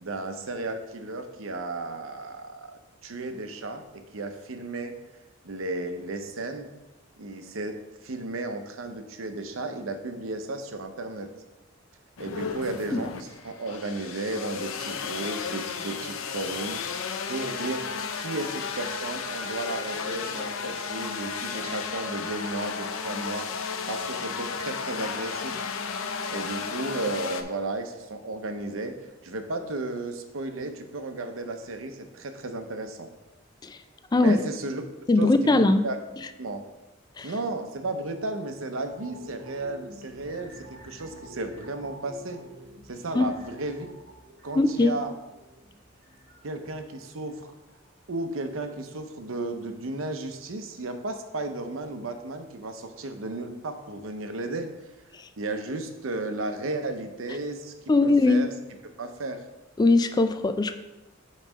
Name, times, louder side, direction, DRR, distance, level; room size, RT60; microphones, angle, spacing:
voice 1, 0.0-2.7 3.0-4.9 5.4-6.7 7.2-11.3 12.2-16.8 17.3-17.9 18.2-23.5 23.9-25.6 26.3-28.9 29.2-33.1 34.1-34.8 35.2-36.0 36.4-36.6 37.2-42.4 42.9-43.9 44.4-45.1 46.4-47.5 48.1-54.7 55.4-57.7 58.0-58.5 58.8-59.4, right 2 dB, 90° right, 6 dB, 0.7 m, -34 dB
sound 1, 12.2-27.4, left 5 dB, 90° left, 0.6 m, -33 dB
voice 2, 35.1-35.8 37.2-37.3 43.1-43.3 44.6-44.9 55.2-55.3 57.9-58.4 59.8-60.8, left 2 dB, 20° left, 10 dB, 0.3 m, -20 dB
sound 2, 38.8-48.2 48.5-48.6, equal, 50° right, 1.0 m, -49 dB
5.5 x 4.1 x 6.1 m, 1.0 s
head